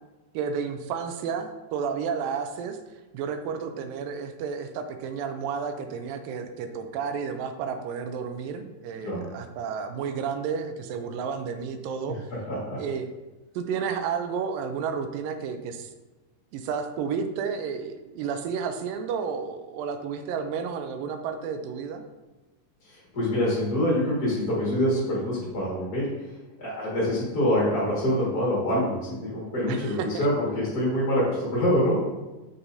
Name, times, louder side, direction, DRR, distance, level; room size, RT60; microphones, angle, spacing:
voice 1, 0.3-2.8 3.1-12.2 12.8-13.0 13.6-15.9 16.5-22.0 29.7-30.3, right 6 dB, 85° right, 7 dB, 2.3 m, -31 dB
voice 2, 12.5-12.8 22.8-26.3 26.6-32.0, equal, 40° left, -7 dB, 1.5 m, -25 dB
7.2 x 6.8 x 2.6 m, 1.1 s
omnidirectional pair, 4.0 m